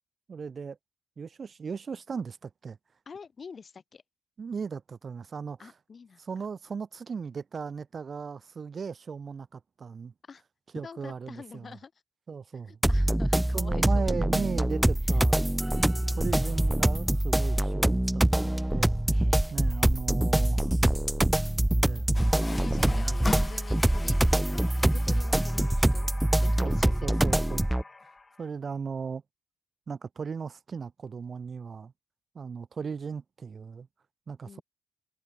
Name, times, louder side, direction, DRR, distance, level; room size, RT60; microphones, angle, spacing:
voice 1, 0.3-0.8 1.2-2.8 4.4-5.7 6.2-10.1 10.7-11.8 12.3-12.8 13.5-15.4 16.1-19.2 19.5-20.7 21.8-22.1 22.7-23.2 26.6-27.8 28.4-29.2 29.9-31.9 32.3-33.9 34.3-34.6, right 5 dB, 40° right, 1.7 m, -37 dB
voice 2, 3.0-4.0 5.6-6.2 10.2-10.4 10.8-11.9 12.7-14.3 15.1-15.2 15.8-16.4 19.1-20.0 22.4-24.2 24.5-26.1 26.4-27.4 34.4-34.6, left 5 dB, 40° left, 4.9 m, -47 dB
sound 1, 12.8-27.8, right 1 dB, 5° right, 0.5 m, -25 dB
Water tap faucet, 22.1-28.5, left 3 dB, 25° left, 1.8 m, -40 dB
cardioid pair, 90°, 0 cm